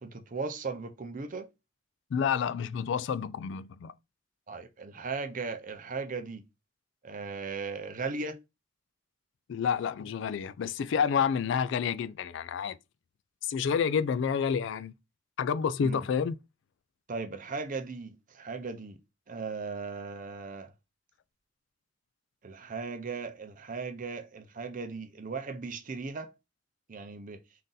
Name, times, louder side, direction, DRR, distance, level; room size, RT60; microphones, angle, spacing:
voice 1, 0.0-1.5 4.5-6.4 7.0-8.4 15.8-16.0 17.1-19.0 19.3-20.7 22.4-26.3 26.9-27.4, right 4 dB, 45° right, 0.6 m, -37 dB
voice 2, 2.1-3.9 9.5-12.8 13.4-14.9 15.4-16.4, left 7 dB, 65° left, 0.3 m, -29 dB
3.8 x 2.6 x 3.9 m
head